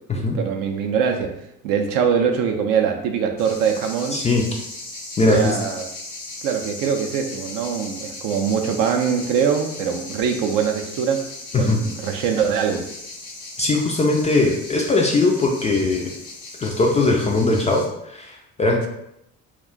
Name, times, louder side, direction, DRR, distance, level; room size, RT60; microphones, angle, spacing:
voice 1, 0.1-1.4 1.6-4.2 5.2-5.9 6.4-12.9, right 7 dB, 50° right, 4 dB, 0.5 m, -23 dB
sound 1, 3.4-17.9, left 2 dB, 90° left, 0.5 m, -37 dB
voice 2, 4.1-4.4 5.2-5.6 11.5-11.8 13.6-16.1 16.6-18.9, left 2 dB, 15° left, -1 dB, 0.4 m, -20 dB
2.4 x 2.1 x 3.6 m, 0.78 s
figure-of-eight pair, 50°, 43 cm